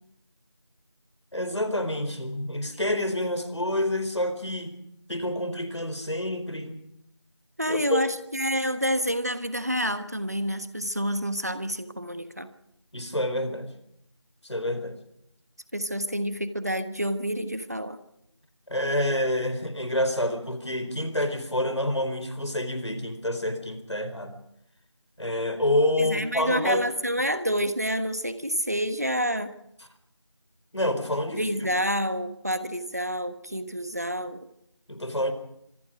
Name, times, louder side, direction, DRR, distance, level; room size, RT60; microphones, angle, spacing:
voice 1, 1.3-4.8 5.1-6.8 7.7-8.0 12.9-13.7 14.4-15.0 18.7-24.4 25.2-26.8 30.7-31.4 34.9-35.3, left 1 dB, 70° left, 9 dB, 4.2 m, -28 dB
voice 2, 7.6-12.5 15.7-18.0 26.0-29.5 31.3-34.5, equal, 35° right, 11 dB, 1.3 m, -28 dB
25.5 x 22.0 x 5.1 m, 0.79 s
figure-of-eight pair, 180°, 15 cm